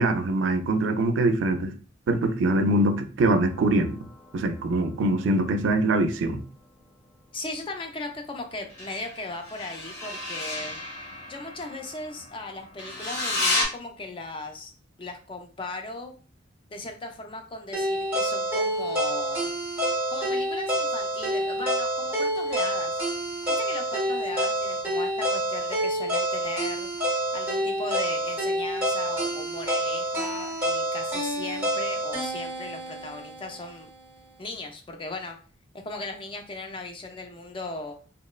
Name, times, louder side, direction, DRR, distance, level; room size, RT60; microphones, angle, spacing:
voice 1, 0.0-1.7 2.1-4.1 4.3-6.4, right 2 dB, 85° right, 0.3 m, -23 dB
sound 1, 3.3-6.4 8.7-13.7, left 2 dB, 65° left, 1.3 m, -33 dB
voice 2, 7.3-10.8 11.3-14.7 15.0-16.2 16.7-19.5 20.1-23.0 23.6-26.9 27.3-33.9 34.4-35.4 35.7-37.9, left 2 dB, 25° left, 0.4 m, -37 dB
sound 2, 17.7-33.8, right 1 dB, 10° right, 0.8 m, -28 dB
2.9 x 2.1 x 2.2 m
head